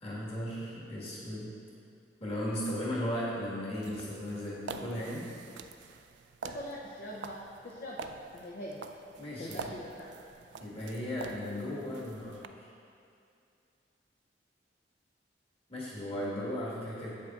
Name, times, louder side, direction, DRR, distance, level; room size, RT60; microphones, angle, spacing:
voice 1, 0.0-1.5 2.2-5.3 9.2-9.7 10.6-12.7 15.7-17.2, equal, 35° left, -7 dB, 1.6 m, -36 dB
sound 1, 3.7-12.5, right 5 dB, 75° right, 0.3 m, -46 dB
voice 2, 6.4-8.8 9.4-10.1, left 1 dB, 55° left, -5 dB, 0.6 m, -43 dB
8.1 x 7.6 x 2.4 m, 2.5 s
head